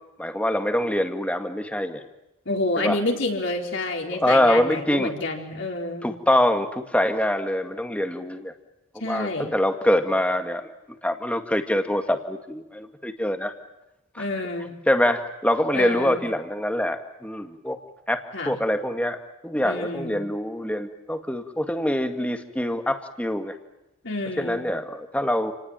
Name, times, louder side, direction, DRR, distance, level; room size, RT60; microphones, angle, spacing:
voice 1, 0.2-2.0 2.8-3.0 4.1-5.1 6.0-8.5 9.0-10.7 11.0-13.5 14.1-14.3 14.6-17.8 18.1-23.6 24.4-25.5, left 1 dB, 5° left, 6 dB, 2.0 m, -24 dB
voice 2, 2.5-6.1 9.0-9.5 14.2-14.7 15.7-16.2 18.3-18.6 19.6-20.2 24.0-24.6, left 2 dB, 60° left, 1 dB, 4.5 m, -28 dB
29.5 x 19.5 x 9.1 m, 0.93 s
head